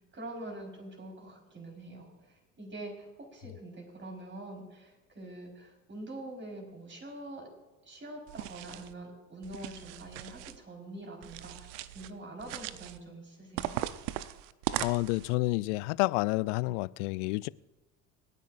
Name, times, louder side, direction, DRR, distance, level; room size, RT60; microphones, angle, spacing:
voice 1, 0.1-7.5 7.8-13.8, right 1 dB, 30° right, 4.5 m, -45 dB
sound 1, 8.3-8.9 9.4-10.6 11.2-12.1 12.4-13.0 13.6-15.3, right 14 dB, 65° right, 0.7 m, -38 dB
voice 2, 14.8-17.5, left 22 dB, 65° left, 0.5 m, -29 dB
26.0 x 10.0 x 2.6 m
hypercardioid pair, 65°, 39 cm